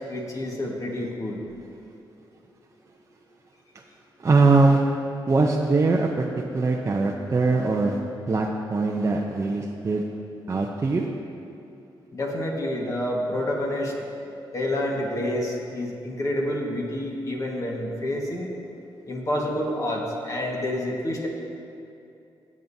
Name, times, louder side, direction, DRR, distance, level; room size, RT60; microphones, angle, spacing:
voice 1, 0.1-1.4 12.1-13.9 14.5-18.5 19.1-21.3, left 1 dB, 40° left, -1 dB, 1.6 m, -28 dB
voice 2, 4.2-4.8 5.3-6.3 6.5-8.0 8.3-10.0 10.5-11.1, right 3 dB, 35° right, 0 dB, 0.6 m, -21 dB
16.0 x 7.4 x 2.7 m, 2.7 s
cardioid pair, 90°, 9 cm